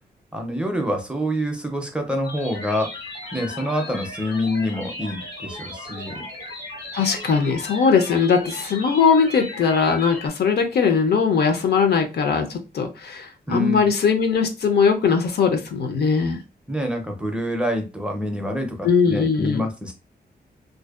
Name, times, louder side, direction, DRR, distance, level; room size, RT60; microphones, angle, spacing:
voice 1, 0.3-2.9 3.3-6.2 13.5-13.9 16.7-19.9, equal, 5° right, 3 dB, 0.4 m, -26 dB
sound 1, 2.2-10.3, left 2 dB, 90° left, 1.4 m, -36 dB
voice 2, 6.9-16.4 18.8-19.6, left 5 dB, 70° left, 6 dB, 0.5 m, -20 dB
2.5 x 2.1 x 2.3 m, 0.29 s
wide cardioid pair, 150°, 17 cm